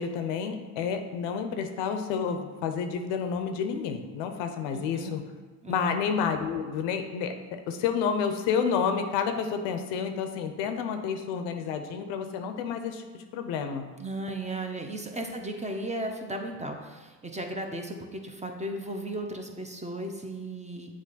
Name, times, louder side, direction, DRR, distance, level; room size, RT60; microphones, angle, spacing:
voice 1, 0.0-5.2 5.7-7.3 7.7-13.9, left 6 dB, 90° left, 7 dB, 0.6 m, -30 dB
voice 2, 4.7-5.1 5.6-6.0 14.0-21.0, right 1 dB, 15° right, 3 dB, 0.9 m, -35 dB
7.4 x 3.3 x 4.0 m, 1.3 s
supercardioid pair, 70°, 43 cm